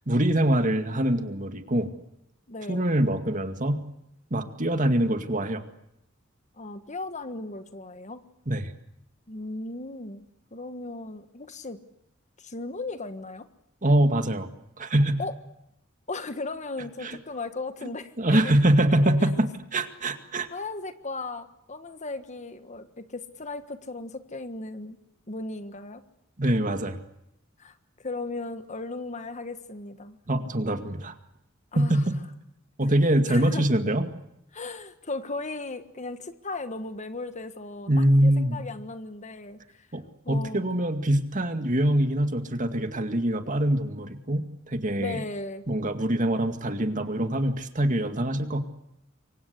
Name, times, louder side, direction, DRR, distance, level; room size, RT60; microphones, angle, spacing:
voice 1, 0.1-1.9 2.7-3.8 4.3-5.6 8.5-8.6 13.8-14.5 14.8-15.2 17.0-17.2 17.8-17.9 18.2-20.5 26.4-27.0 30.3-31.1 31.7-32.2 32.8-34.0 37.9-38.6 39.9-40.0 40.3-45.2 45.7-48.6, right 1 dB, 40° right, 8 dB, 2.2 m, -24 dB
voice 2, 2.5-2.9 6.6-8.2 9.3-10.2 10.5-11.8 12.4-13.5 15.2-15.3 16.1-18.5 19.2-19.3 20.5-25.0 25.3-26.0 27.6-30.2 31.7-32.0 33.0-33.8 34.5-39.9 40.2-40.7 45.0-45.7, left 3 dB, 35° left, 10 dB, 1.5 m, -36 dB
28.0 x 24.0 x 8.2 m, 0.80 s
head